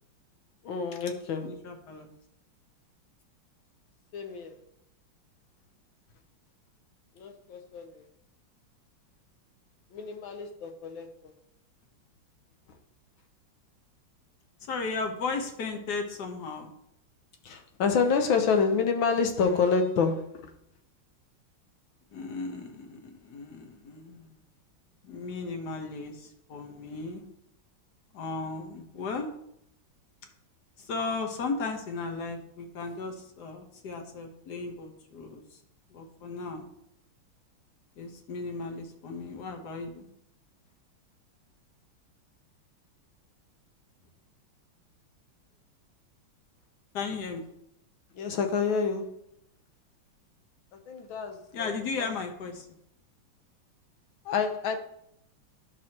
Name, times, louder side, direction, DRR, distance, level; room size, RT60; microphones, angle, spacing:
voice 1, 0.6-1.6 4.1-4.5 7.2-8.0 9.9-11.3 17.4-20.5 48.1-49.1 50.9-51.7 52.0-52.1 54.2-54.8, left 5 dB, 75° left, 1.6 m, -28 dB
voice 2, 1.4-2.1 14.7-16.8 22.1-24.4 25.0-27.3 28.1-29.3 30.8-35.4 35.9-36.7 38.0-40.1 46.9-47.5 51.5-52.7, left 4 dB, 55° left, 1.5 m, -36 dB
10.5 x 6.2 x 2.9 m
omnidirectional pair, 2.3 m